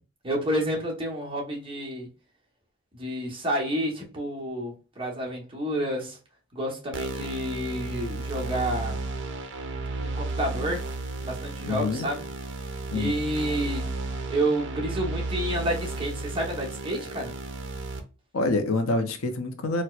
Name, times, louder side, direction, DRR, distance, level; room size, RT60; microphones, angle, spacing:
voice 1, 0.2-2.1 2.9-6.2 6.5-9.0 10.0-10.9 11.2-12.2 12.9-13.9 14.3-17.3, right 1 dB, 25° right, 1.1 m, -29 dB
sound 1, 6.9-18.0, right 2 dB, 60° right, 0.6 m, -33 dB
voice 2, 11.6-12.1 12.9-13.1 18.3-19.8, left 2 dB, 85° left, 0.6 m, -26 dB
4.2 x 2.1 x 2.4 m
head